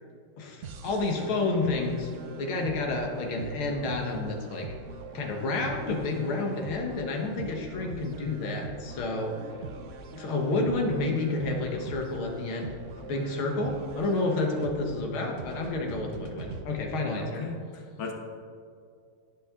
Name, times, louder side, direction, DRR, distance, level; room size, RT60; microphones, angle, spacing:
voice 1, 0.4-2.1 2.4-4.7 5.1-9.3 10.1-12.8 13.1-17.4, left 2 dB, 90° left, 2 dB, 2.2 m, -30 dB
sound 1, 0.6-16.6, right 4 dB, 75° right, 0.7 m, -43 dB
voice 2, 17.1-18.1, left 4 dB, 70° left, 1 dB, 2.0 m, -38 dB
18.0 x 6.1 x 3.7 m, 2.3 s
omnidirectional pair, 2.2 m